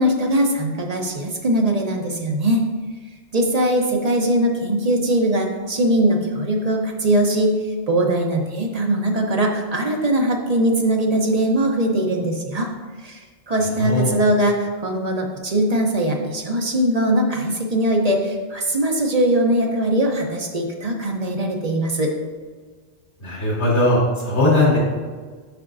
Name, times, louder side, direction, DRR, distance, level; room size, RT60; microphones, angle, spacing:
voice 1, 0.0-2.6 3.3-7.6 7.9-12.7 13.0-13.2 13.5-22.1, right 1 dB, 40° right, 1 dB, 0.8 m, -21 dB
voice 2, 13.8-14.1 23.2-24.8, left 1 dB, 75° left, -6 dB, 2.4 m, -19 dB
7.9 x 5.8 x 2.6 m, 1.5 s
omnidirectional pair, 1.1 m